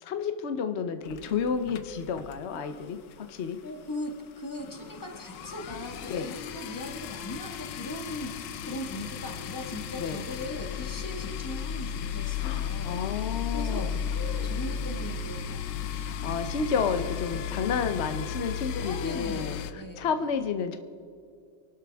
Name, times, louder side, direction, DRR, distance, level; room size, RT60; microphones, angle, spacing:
voice 1, 0.0-3.6 6.1-6.3 10.0-10.2 12.4-14.0 16.1-19.6 20.0-20.8, left 6 dB, 50° left, 8 dB, 0.8 m, -31 dB
sound 1, 1.0-2.8 3.1-3.3 3.6-3.7 3.9-19.7, left 8 dB, 80° left, 1.4 m, -35 dB
voice 2, 3.6-13.0 13.5-15.9 18.8-20.3, left 1 dB, 10° left, 2 dB, 1.4 m, -39 dB
26.0 x 12.0 x 3.5 m, 2.4 s
omnidirectional pair, 1.9 m